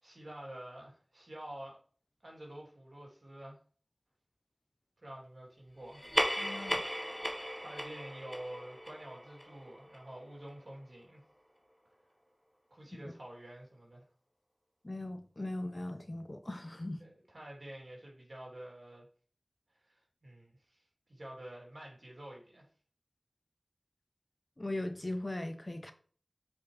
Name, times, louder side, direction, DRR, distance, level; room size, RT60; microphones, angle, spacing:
voice 1, 0.0-1.8 2.2-3.6 5.0-6.1 7.6-11.2 12.7-14.1 17.0-19.1 19.7-20.8 21.1-22.7, right 1 dB, 70° right, 3.2 m, -48 dB
sound 1, 5.9-10.8, equal, 5° left, 1.5 m, -37 dB
voice 2, 6.4-6.8 14.8-17.0 24.6-25.9, left 1 dB, 40° left, 0.9 m, -39 dB
7.2 x 5.1 x 3.3 m
wide cardioid pair, 50°, 0 cm